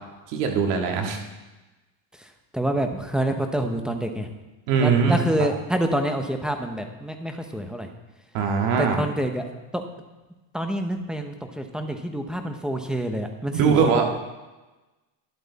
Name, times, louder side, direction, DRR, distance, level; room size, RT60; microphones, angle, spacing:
voice 1, 0.3-1.2 4.7-5.2 8.3-9.0 13.5-14.0, right 6 dB, 75° right, 2 dB, 2.1 m, -21 dB
voice 2, 2.1-4.3 4.8-7.9 8.8-9.8 10.5-14.1, right 1 dB, ahead, 5 dB, 0.8 m, -27 dB
12.0 x 10.5 x 4.1 m, 1.1 s
cardioid pair, 145°, 50 cm